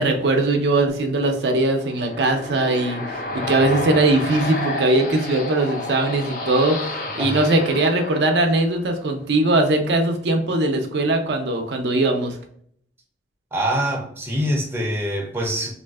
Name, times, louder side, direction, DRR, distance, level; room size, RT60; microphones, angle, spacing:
voice 1, 0.0-3.0 3.3-12.4, right 2 dB, 75° right, 4 dB, 0.5 m, -20 dB
sound 1, 1.6-9.1, left 2 dB, 50° left, 0.5 m, -30 dB
voice 2, 13.5-15.7, equal, 15° right, -1 dB, 0.5 m, -24 dB
3.3 x 2.4 x 2.3 m, 0.64 s
head